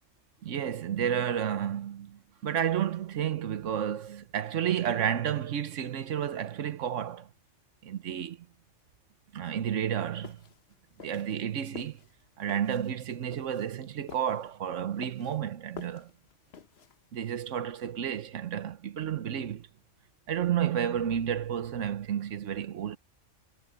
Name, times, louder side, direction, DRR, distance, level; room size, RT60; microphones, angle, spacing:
voice 1, 0.4-7.3 7.8-8.5 9.3-10.4 11.0-12.0 12.4-16.1 17.1-19.7 20.3-23.0, right 9 dB, 85° right, 1.2 m, -31 dB
sound 1, 10.2-17.2, left 7 dB, 60° left, 1.2 m, -49 dB
omnidirectional pair, 1.2 m